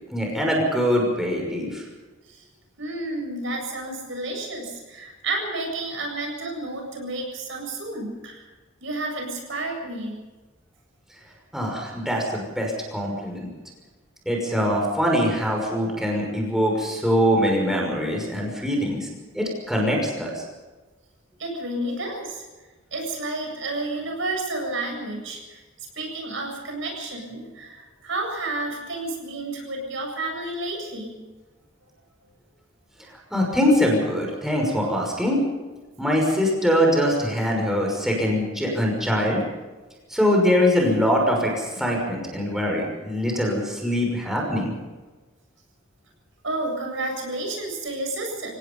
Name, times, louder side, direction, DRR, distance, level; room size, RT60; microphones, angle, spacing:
voice 1, 0.1-1.8 11.5-13.5 14.3-19.1 19.3-20.4 33.3-35.4 36.0-39.4 40.1-44.7, equal, ahead, -1 dB, 5.9 m, -23 dB
voice 2, 2.8-8.5 8.8-10.2 21.4-22.4 22.9-31.1 46.4-48.5, right 2 dB, 70° right, 1 dB, 7.8 m, -31 dB
28.5 x 18.0 x 5.5 m, 1.2 s
head